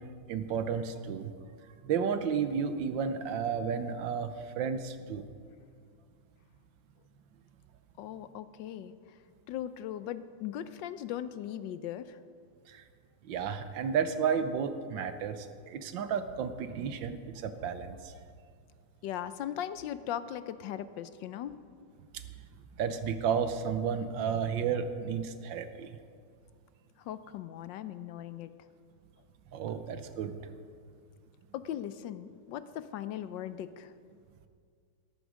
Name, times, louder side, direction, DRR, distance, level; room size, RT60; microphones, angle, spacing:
voice 1, 0.3-1.3 1.8-5.3 12.7-12.8 13.3-18.1 22.8-25.9 29.5-30.4, right 7 dB, 80° right, 10 dB, 1.5 m, -32 dB
voice 2, 8.0-8.9 9.5-12.2 19.0-21.6 27.0-28.5 31.5-33.9, left 11 dB, 75° left, 13 dB, 1.2 m, -39 dB
13.0 x 11.5 x 6.3 m, 2.2 s
omnidirectional pair, 2.1 m